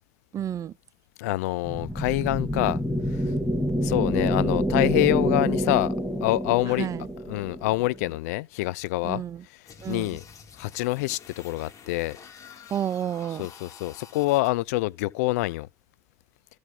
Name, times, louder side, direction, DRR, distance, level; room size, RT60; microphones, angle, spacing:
voice 1, 0.3-0.7 6.8-7.0 9.0-9.4 9.8-10.1 12.7-13.4, right 10 dB, 40° right, 0.5 m, -30 dB
voice 2, 1.2-2.8 3.8-5.9 6.2-6.9 7.3-9.2 9.9-10.2 10.6-12.2 13.3-15.7, left 19 dB, 75° left, 0.5 m, -26 dB
sound 1, 1.6-8.1, equal, 5° left, 3.1 m, -27 dB
sound 2, 9.6-14.5, left 6 dB, 40° left, 3.8 m, -48 dB
14.0 x 4.7 x 3.9 m
hypercardioid pair, 75°, 9 cm